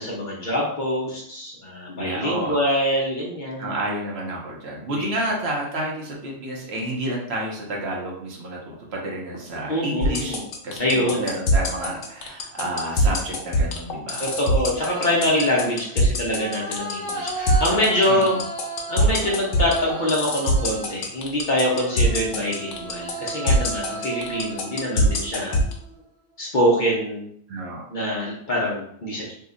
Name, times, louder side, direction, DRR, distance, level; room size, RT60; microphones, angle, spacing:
voice 1, 0.0-3.7 4.9-5.1 9.7-10.5 10.8-11.3 14.2-18.3 18.9-25.6 26.4-27.3 27.9-29.3, equal, 50° left, -4 dB, 0.7 m, -24 dB
voice 2, 2.0-2.6 3.6-14.3 18.1-18.4 27.5-27.8, right 1 dB, 65° right, -2 dB, 0.9 m, -30 dB
sound 1, 9.2-10.0 11.0-12.3 12.6-13.2 14.2-21.1 21.7-26.0, right 3 dB, 10° left, 0.9 m, -36 dB
sound 2, 10.0-25.7, equal, 80° left, 1.0 m, -21 dB
2.7 x 2.1 x 3.6 m, 0.68 s
omnidirectional pair, 1.2 m